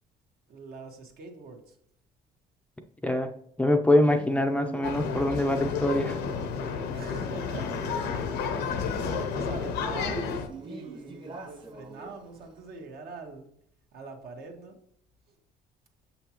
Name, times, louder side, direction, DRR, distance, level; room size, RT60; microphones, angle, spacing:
voice 1, 0.5-1.8 6.9-7.8 8.0-13.4 13.9-14.8 15.3-15.4, right 4 dB, 65° right, 3 dB, 1.4 m, -44 dB
voice 2, 3.6-6.2, left 1 dB, 10° left, 5 dB, 0.5 m, -24 dB
Male speech man speaking, 4.1-12.7, right 3 dB, 30° right, 1.0 m, -46 dB
sound 1, 4.8-10.5, left 5 dB, 80° left, 0.8 m, -31 dB
7.0 x 5.6 x 2.9 m, 0.70 s
cardioid pair, 110°, 17 cm